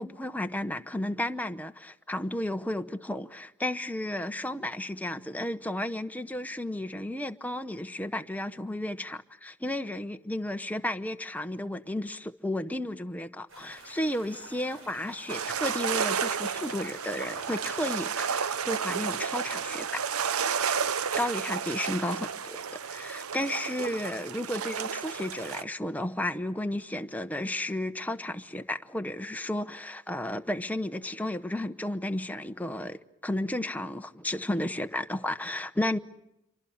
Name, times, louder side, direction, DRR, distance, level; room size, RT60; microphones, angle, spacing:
voice 1, 0.0-20.0 21.1-36.0, left 1 dB, 5° left, 0.9 m, -33 dB
sound 1, 13.5-18.6, right 2 dB, 65° right, 7.4 m, -50 dB
sound 2, 15.3-25.6, right 6 dB, 85° right, 0.9 m, -32 dB
28.0 x 24.5 x 7.1 m
head